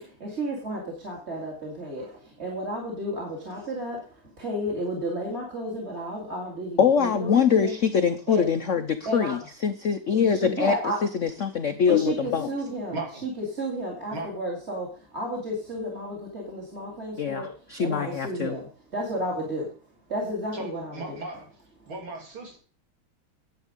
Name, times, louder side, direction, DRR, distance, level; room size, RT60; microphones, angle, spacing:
voice 1, 0.0-4.0 4.4-7.7 8.3-8.5 9.0-9.4 10.4-11.0 11.9-13.0 13.5-17.5 17.8-19.7 20.1-20.9, right 1 dB, 30° right, -1 dB, 2.8 m, -32 dB
voice 2, 6.8-10.8 11.0-12.5 17.2-18.5, left 7 dB, 70° left, 9 dB, 0.7 m, -23 dB
voice 3, 12.9-13.2 14.1-14.3 20.5-21.5 21.9-22.6, right 2 dB, 80° right, 1 dB, 3.9 m, -36 dB
10.5 x 8.3 x 5.2 m, 0.40 s
omnidirectional pair, 2.2 m